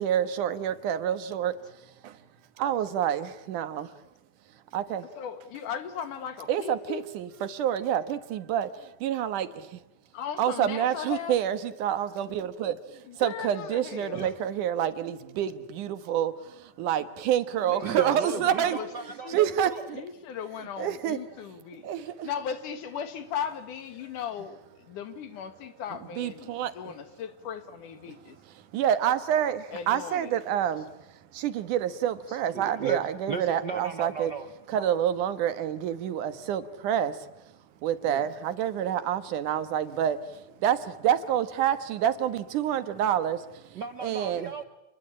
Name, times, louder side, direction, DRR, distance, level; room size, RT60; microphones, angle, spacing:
voice 1, 0.0-1.5 1.8-2.2 2.6-3.9 4.7-5.1 6.5-9.8 10.4-18.8 19.3-20.0 20.8-21.2 21.8-22.3 26.1-26.7 28.0-28.2 28.5-34.3 34.7-37.3 37.8-44.5, right 10 dB, 80° right, 2.8 m, -28 dB
voice 2, 5.1-7.0 10.1-11.4 13.0-14.3 17.6-18.9 19.2-19.4 19.9-21.9 22.2-28.4 29.7-30.3, left 8 dB, 85° left, 3.2 m, -37 dB
voice 3, 17.8-19.9 32.3-33.0 33.3-34.9 38.1-38.3 43.7-44.6, right 6 dB, 65° right, 1.0 m, -36 dB
28.5 x 21.5 x 8.7 m
omnidirectional pair, 3.5 m